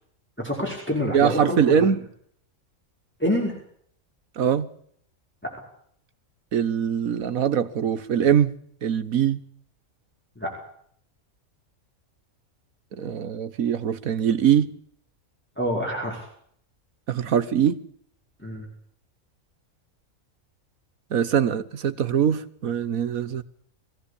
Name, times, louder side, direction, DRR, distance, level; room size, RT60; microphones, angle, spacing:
voice 1, 0.4-1.9 3.2-3.5 10.4-10.5 15.6-16.2 18.4-18.7, equal, 10° left, 5.6 m, -27 dB
voice 2, 1.1-2.0 4.4-4.7 6.5-8.5 8.8-9.4 13.0-14.7 17.1-17.8 21.1-23.4, right 8 dB, 90° right, 1.6 m, -22 dB
22.5 x 16.0 x 8.6 m
omnidirectional pair, 1.4 m